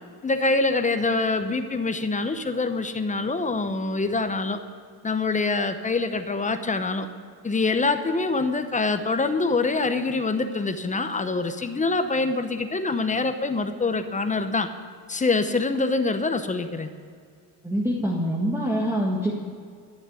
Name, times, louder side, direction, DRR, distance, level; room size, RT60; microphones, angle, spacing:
voice 1, 0.2-4.6 5.0-7.1 7.4-14.7 15.1-16.9, left 3 dB, 15° left, 9 dB, 0.8 m, -25 dB
voice 2, 17.6-19.3, equal, 5° right, -3 dB, 1.8 m, -25 dB
12.5 x 7.3 x 9.5 m, 2.2 s
cardioid pair, 115°, 45 cm